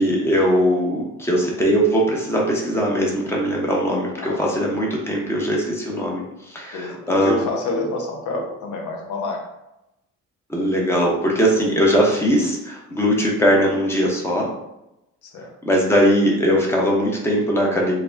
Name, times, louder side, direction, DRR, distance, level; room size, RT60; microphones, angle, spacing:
voice 1, 0.0-6.2 6.5-7.4 10.5-14.5 15.6-18.0, equal, 10° left, -2 dB, 0.7 m, -20 dB
voice 2, 4.2-4.7 6.7-9.4 12.9-13.1 15.2-15.5, left 2 dB, 75° left, 1 dB, 0.6 m, -28 dB
2.3 x 2.1 x 3.2 m, 0.89 s
cardioid pair, 90°, 30 cm